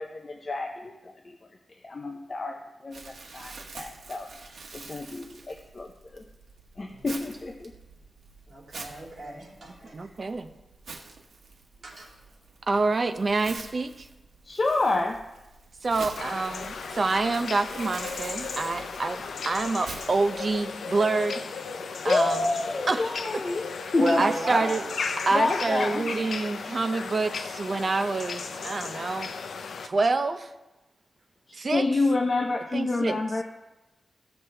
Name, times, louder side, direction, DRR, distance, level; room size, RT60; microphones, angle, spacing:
voice 1, 0.0-1.4 1.8-6.2 6.8-7.7 14.4-15.2 22.0-23.6 23.9-24.2 25.3-26.0 31.5-33.4, left 3 dB, 35° left, 3 dB, 0.6 m, -28 dB
Crumpling crinkling, 2.9-20.6, right 3 dB, 80° right, 1.2 m, -46 dB
voice 2, 8.5-10.1 11.8-12.1 24.0-24.8, right 1 dB, 55° right, -4 dB, 3.0 m, -31 dB
voice 3, 9.9-10.5 12.7-14.1 15.8-21.4 22.0-22.4 22.9-23.1 24.2-24.8 25.3-29.3 29.8-30.5 31.5-31.8 32.7-33.2, right 3 dB, 40° right, 8 dB, 0.6 m, -27 dB
sound 1, 16.2-29.9, left 5 dB, 85° left, 0.6 m, -35 dB
15.0 x 6.1 x 3.3 m, 1.0 s
wide cardioid pair, 155°, 0 cm